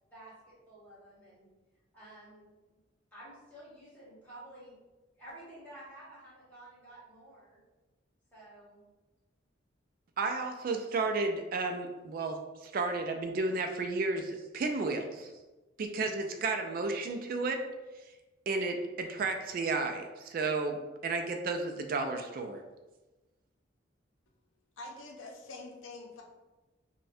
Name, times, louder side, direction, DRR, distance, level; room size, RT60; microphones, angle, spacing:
voice 1, 0.7-1.5 1.9-2.5 3.1-4.7 5.2-7.6 8.3-8.8, right 1 dB, 10° left, -10 dB, 1.5 m, -51 dB
voice 2, 10.2-15.3 15.8-17.7 18.5-22.6, right 3 dB, 45° right, 5 dB, 0.3 m, -32 dB
voice 3, 24.8-26.2, left 2 dB, 90° left, 0 dB, 0.7 m, -45 dB
5.4 x 2.1 x 2.6 m, 1.1 s
head